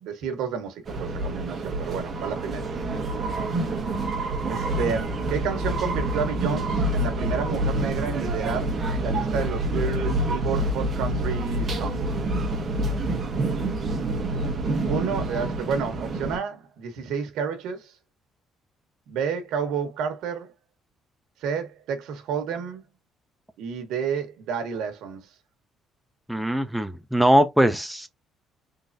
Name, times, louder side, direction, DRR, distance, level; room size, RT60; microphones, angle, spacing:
voice 1, 0.0-2.7 4.5-8.7 9.0-12.0 14.9-17.9 19.1-20.5 21.4-22.8 23.6-25.3, right 6 dB, 80° right, 1.1 m, -30 dB
sound 1, 0.8-16.4, right 1 dB, 30° right, 1.0 m, -27 dB
voice 2, 26.3-28.1, right 1 dB, ahead, 0.4 m, -21 dB
3.8 x 3.2 x 2.6 m
cardioid pair, 165°, 0 cm